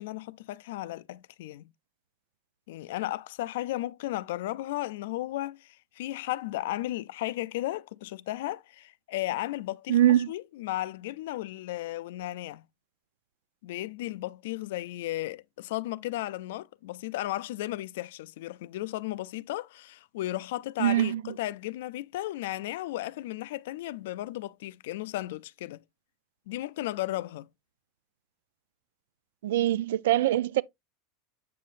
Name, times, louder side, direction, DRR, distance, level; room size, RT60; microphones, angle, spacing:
voice 1, 0.0-1.7 2.7-10.0 10.3-12.6 13.6-25.8 26.5-27.5, left 16 dB, 80° left, 0.3 m, -35 dB
voice 2, 9.9-10.3 20.8-21.2 29.4-30.6, right 12 dB, 85° right, 0.4 m, -23 dB
8.3 x 5.6 x 2.5 m
supercardioid pair, 135°, 0 cm